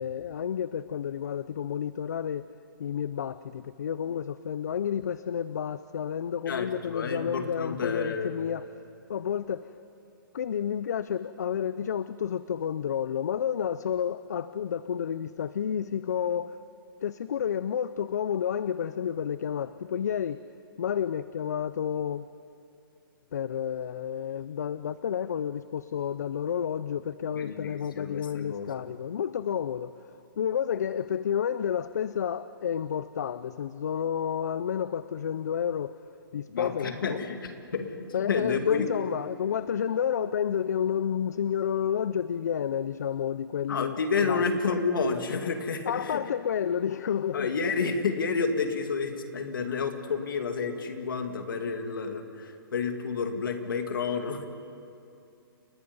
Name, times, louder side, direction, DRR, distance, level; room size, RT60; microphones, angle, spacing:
voice 1, 0.0-2.5 2.8-8.7 9.1-9.7 10.3-16.6 17.0-20.4 20.8-22.3 23.3-36.0 36.3-37.2 38.1-44.4 45.9-47.5, left 8 dB, 45° left, 15 dB, 0.5 m, -30 dB
voice 2, 6.5-8.3 27.4-28.7 36.5-38.9 43.7-46.2 47.3-54.5, left 5 dB, 65° left, 5 dB, 2.4 m, -30 dB
30.0 x 19.0 x 5.4 m, 2.6 s
hypercardioid pair, 175°, 12 cm